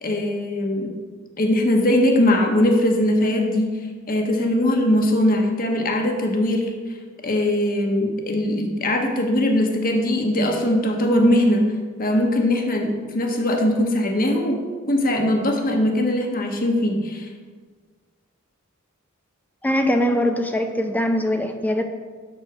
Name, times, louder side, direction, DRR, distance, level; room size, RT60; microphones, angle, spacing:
voice 1, 0.0-0.9 1.4-3.7 4.1-6.7 7.2-11.7 12.0-17.3, left 1 dB, 45° left, 2 dB, 1.2 m, -20 dB
voice 2, 19.6-21.8, equal, 10° left, 5 dB, 0.5 m, -22 dB
7.5 x 6.3 x 6.2 m, 1.5 s
head